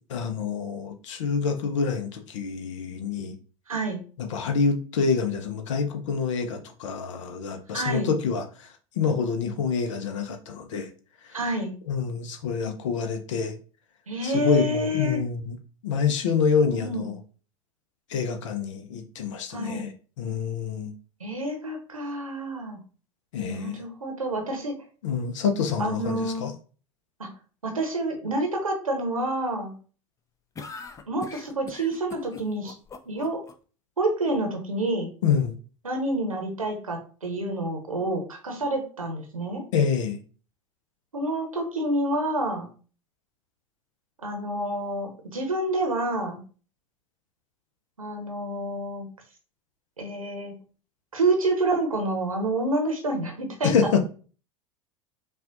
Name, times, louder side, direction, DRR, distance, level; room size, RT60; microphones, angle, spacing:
voice 1, 0.1-3.4 4.2-10.9 11.2-11.4 11.9-13.5 14.2-15.6 15.8-17.2 18.1-19.9 20.2-20.9 23.3-23.8 25.0-26.5 35.2-35.5 39.7-40.2 53.6-54.0, left 6 dB, 65° left, 6 dB, 0.7 m, -27 dB
voice 2, 3.7-4.0 7.7-8.1 11.3-11.7 14.1-15.2 16.7-17.1 19.5-19.9 21.2-22.8 23.5-24.7 25.8-26.5 27.2-27.3 27.6-29.7 31.1-32.8 33.1-33.4 34.0-35.1 35.8-39.6 41.1-42.7 44.2-46.4 48.0-49.1 50.0-50.5 51.1-54.0, right 1 dB, 85° right, 4 dB, 0.8 m, -28 dB
sound 1, 30.5-33.5, left 4 dB, 20° left, 0.5 m, -41 dB
5.6 x 2.4 x 2.6 m, 0.38 s
figure-of-eight pair, 80°, 17 cm